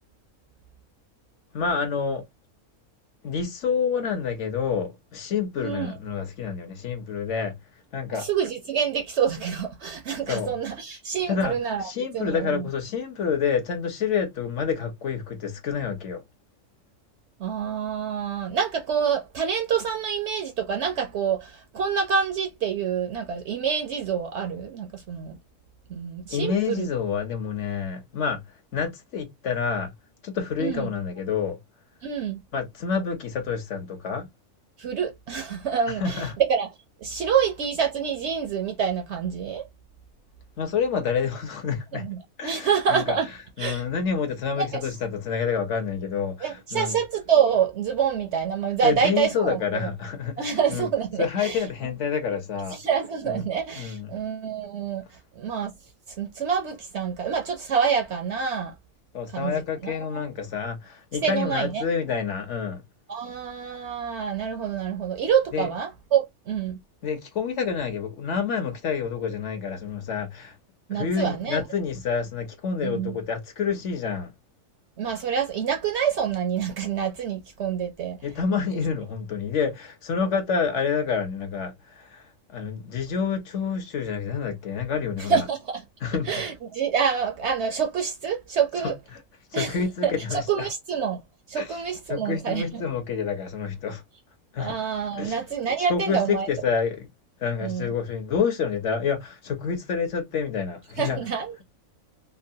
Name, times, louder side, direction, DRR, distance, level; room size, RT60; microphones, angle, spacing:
voice 1, 1.5-2.2 3.2-7.5 7.9-8.3 10.3-10.5 11.3-11.5 11.8-16.2 26.3-28.4 28.7-29.9 30.2-31.6 32.5-34.3 36.0-36.3 40.6-42.0 42.4-43.2 43.6-47.0 48.8-50.9 51.2-52.8 53.3-53.4 53.8-54.1 59.1-62.8 65.5-65.7 67.0-70.5 70.9-74.3 78.2-85.4 86.0-86.4 89.5-90.7 91.6-91.7 92.1-94.0 94.5-94.7 95.1-95.4 95.9-97.1 97.4-101.2, left 6 dB, 60° left, 1.0 m, -28 dB
voice 2, 5.6-5.9 8.1-12.7 17.4-25.4 25.9-26.9 30.6-30.9 32.0-32.4 34.8-36.7 37.0-39.7 41.9-43.3 43.6-43.8 44.6-44.8 46.4-49.9 50.4-51.9 52.7-55.7 56.1-58.7 59.3-60.2 61.2-61.8 63.1-66.8 70.9-71.6 72.8-73.2 75.0-78.3 85.2-85.8 86.3-89.0 89.5-89.8 90.0-91.2 91.5-92.8 94.6-96.5 97.6-97.9 101.0-101.6, right 7 dB, 60° right, 0.8 m, -27 dB
3.0 x 2.2 x 2.6 m
omnidirectional pair, 1.5 m